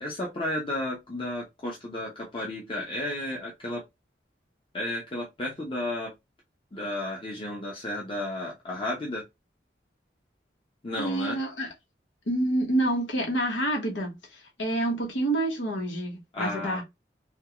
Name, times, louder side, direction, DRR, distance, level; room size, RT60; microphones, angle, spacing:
voice 1, 0.0-3.8 4.7-6.1 6.7-9.3 10.8-11.4 16.3-16.8, left 1 dB, 30° left, 0.7 m, -33 dB
voice 2, 11.0-11.7 12.3-16.8, right 1 dB, 85° left, 1.1 m, -28 dB
3.6 x 2.3 x 2.8 m
head